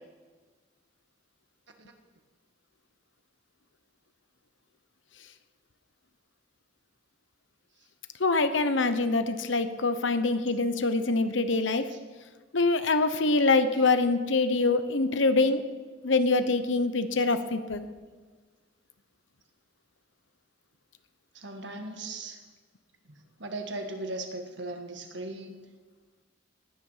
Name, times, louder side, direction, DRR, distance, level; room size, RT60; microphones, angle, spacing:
voice 1, 8.2-11.9 12.5-15.7 16.0-17.9, left 3 dB, 75° left, 10 dB, 1.0 m, -25 dB
voice 2, 21.3-22.4 23.4-25.7, right 2 dB, 65° right, 5 dB, 1.7 m, -37 dB
18.5 x 9.8 x 5.8 m, 1.4 s
head